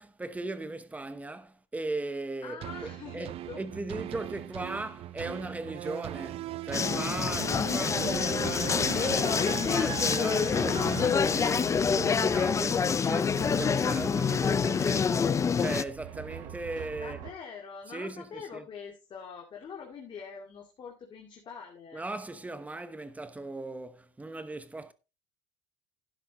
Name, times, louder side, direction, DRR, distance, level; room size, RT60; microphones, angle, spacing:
voice 1, 0.0-3.3 3.6-17.2 17.9-18.6 21.9-24.9, right 2 dB, 10° right, 1.0 m, -38 dB
voice 2, 2.4-3.6 16.9-22.0, left 6 dB, 40° left, 2.3 m, -44 dB
sound 1, 2.6-12.0 12.5-12.6, right 13 dB, 50° right, 0.6 m, -39 dB
sound 2, 6.7-15.8, left 6 dB, 25° left, 0.5 m, -27 dB
sound 3, 7.9-17.3, right 9 dB, 80° right, 4.0 m, -44 dB
12.0 x 10.0 x 3.1 m
cardioid pair, 125°, 13 cm